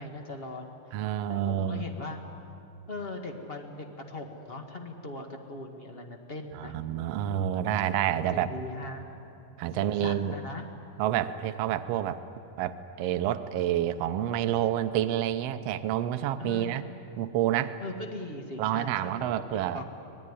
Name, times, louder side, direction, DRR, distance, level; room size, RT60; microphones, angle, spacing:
voice 1, 0.0-0.8 1.3-2.2 2.9-6.8 8.1-9.2 9.7-10.7 16.4-17.0 17.8-19.8, left 2 dB, 35° left, 3 dB, 0.9 m, -40 dB
voice 2, 0.9-1.8 6.5-8.5 9.6-10.3 11.0-12.2 12.6-16.8 17.2-17.7 18.6-19.8, right 11 dB, 85° right, 9 dB, 1.4 m, -28 dB
25.5 x 19.0 x 9.8 m, 2.8 s
omnidirectional pair, 3.8 m